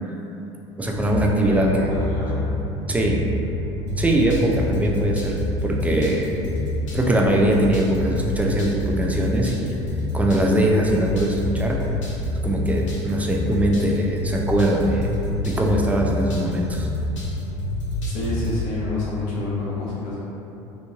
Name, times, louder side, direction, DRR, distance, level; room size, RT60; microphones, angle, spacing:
voice 1, 0.8-1.9 2.3-2.4 2.9-3.2 4.0-6.3 6.9-9.7 10.1-11.8 12.4-15.1 15.4-16.9, right 1 dB, 10° right, -1 dB, 0.5 m, -21 dB
sound 1, 0.9-18.7, left 1 dB, 90° left, 0.7 m, -27 dB
voice 2, 1.4-2.5 18.1-20.2, left 2 dB, 60° left, -7 dB, 0.8 m, -29 dB
3.1 x 2.5 x 3.5 m, 2.9 s
hypercardioid pair, 75°, 16 cm